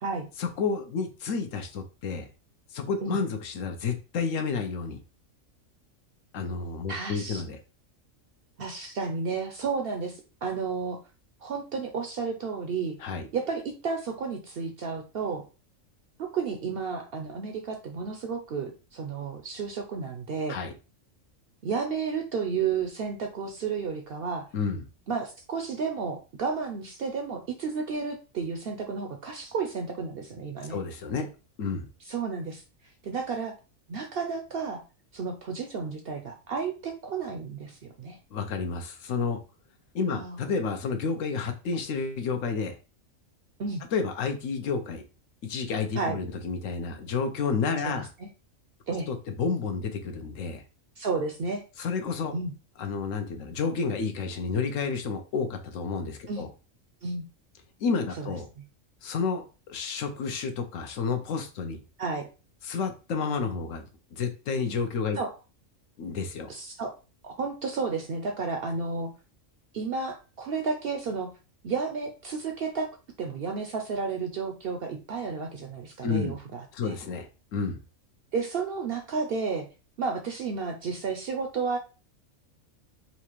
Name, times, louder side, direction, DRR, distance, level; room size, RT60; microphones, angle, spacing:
voice 1, 0.4-2.3 2.7-5.0 6.3-7.6 13.0-13.2 20.5-20.7 24.5-24.8 30.7-31.3 31.6-31.9 38.3-39.4 39.9-42.7 43.9-45.0 45.4-48.1 48.9-50.6 51.8-52.3 52.8-56.5 57.8-58.5 59.0-61.8 62.6-63.8 64.1-65.2 66.0-66.5 76.0-76.4 76.7-77.8, left 5 dB, 75° left, 6 dB, 1.1 m, -30 dB
voice 2, 6.9-7.4 8.6-11.0 11.4-13.0 13.3-15.4 16.2-20.6 21.6-24.5 25.1-30.8 32.1-32.6 33.0-33.6 33.9-34.8 35.1-38.2 40.1-40.5 43.6-43.8 46.0-46.2 47.8-47.9 48.2-48.3 48.9-49.1 51.0-51.6 52.3-52.5 56.3-56.4 57.0-57.2 58.2-58.3 62.0-62.3 65.1-65.3 66.5-67.0 67.2-69.1 69.7-71.3 71.6-72.9 73.2-76.9 78.3-79.7 80.0-81.8, right 5 dB, 60° right, 4 dB, 0.6 m, -32 dB
4.2 x 2.4 x 2.9 m, 0.32 s
omnidirectional pair, 1.4 m